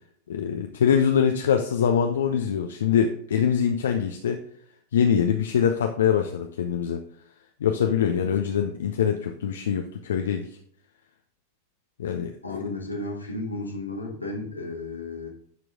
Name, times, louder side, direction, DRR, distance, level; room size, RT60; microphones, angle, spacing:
voice 1, 0.3-4.4 4.9-7.0 7.6-10.5 12.0-12.6, left 8 dB, 65° left, 5 dB, 0.6 m, -23 dB
voice 2, 12.4-15.3, left 2 dB, 85° left, 0 dB, 1.9 m, -33 dB
11.0 x 4.6 x 3.7 m, 0.63 s
figure-of-eight pair, 90°, 0 cm